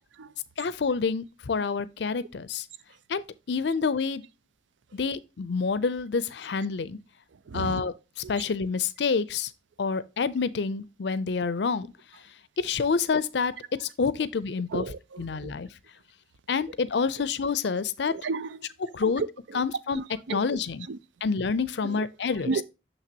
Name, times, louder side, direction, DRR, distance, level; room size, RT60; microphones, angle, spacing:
voice 1, 0.6-2.6 3.1-4.3 4.9-7.0 7.5-7.9 8.3-9.5 9.8-11.9 12.6-13.5 13.8-14.9 15.2-15.7 16.5-18.1 18.9-19.2 19.5-20.0 20.3-20.9 21.2-22.5, left 5 dB, 65° left, 0.5 m, -28 dB
voice 2, 7.5-7.8 8.2-8.3 14.7-15.3 18.1-18.6 19.0-19.3 19.5-19.6 19.9-20.4 20.9-21.0 21.8-22.0 22.5-22.6, right 4 dB, 80° right, 0.5 m, -32 dB
6.5 x 5.9 x 2.8 m
head